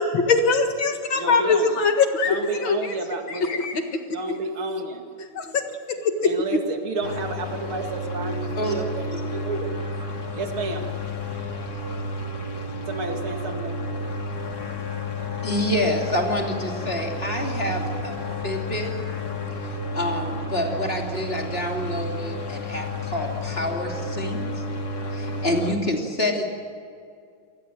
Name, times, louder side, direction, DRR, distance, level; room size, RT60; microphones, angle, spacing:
voice 1, 0.0-2.9 3.4-4.0 5.4-6.3, left 4 dB, 65° left, 6 dB, 2.5 m, -22 dB
voice 2, 1.2-1.8 2.2-3.7 4.1-5.6 6.2-9.7 10.0-11.0 12.8-13.8, right 3 dB, 80° right, 4 dB, 3.0 m, -31 dB
sound 1, 7.0-25.8, left 2 dB, 45° left, 3.0 m, -31 dB
voice 3, 15.4-18.2 18.4-18.9 19.9-24.6 25.1-26.5, left 1 dB, 25° left, 1 dB, 3.2 m, -27 dB
28.0 x 20.0 x 7.7 m, 2.3 s
omnidirectional pair, 2.3 m